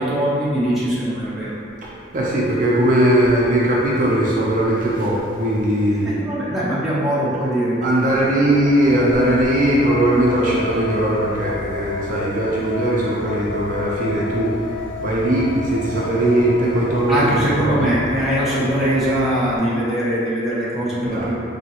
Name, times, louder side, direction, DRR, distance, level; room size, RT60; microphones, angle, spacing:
voice 1, 0.0-1.6 6.0-8.4 17.1-21.4, right 1 dB, ahead, -10 dB, 0.7 m, -21 dB
voice 2, 2.1-6.1 7.8-14.7 15.0-17.3 17.6-17.8 21.1-21.3, right 1 dB, 45° right, -5 dB, 0.5 m, -19 dB
sound 1, 8.5-19.6, left 4 dB, 85° left, 0.3 m, -32 dB
4.2 x 2.7 x 2.8 m, 2.4 s
head